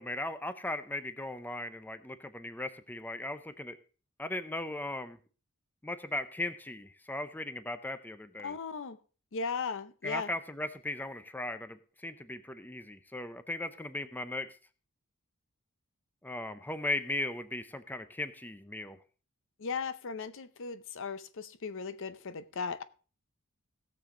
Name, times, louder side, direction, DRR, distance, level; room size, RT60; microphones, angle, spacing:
voice 1, 0.0-3.8 4.2-5.2 5.8-8.6 10.0-14.5 16.2-19.0, left 2 dB, 10° left, 0.6 m, -37 dB
voice 2, 8.4-9.0 9.3-10.3 19.6-22.8, left 5 dB, 60° left, 0.7 m, -37 dB
17.0 x 7.0 x 3.8 m
head